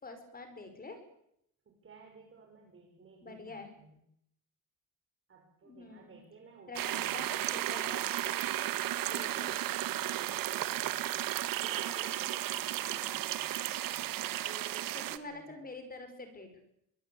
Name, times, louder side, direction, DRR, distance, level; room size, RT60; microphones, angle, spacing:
voice 1, 0.0-1.0 3.2-3.7 5.7-6.2 6.7-8.1 9.1-9.6 12.7-13.0 14.9-16.5, left 3 dB, 25° left, 8 dB, 5.2 m, -46 dB
voice 2, 1.7-4.0 5.3-7.3 9.1-9.5 9.8-11.2 11.6-15.6, right 4 dB, 40° right, 2 dB, 5.6 m, -55 dB
sound 1, 6.7-15.2, right 13 dB, 85° right, 1.6 m, -34 dB
23.5 x 22.5 x 8.5 m, 0.77 s
cardioid pair, 135°, 33 cm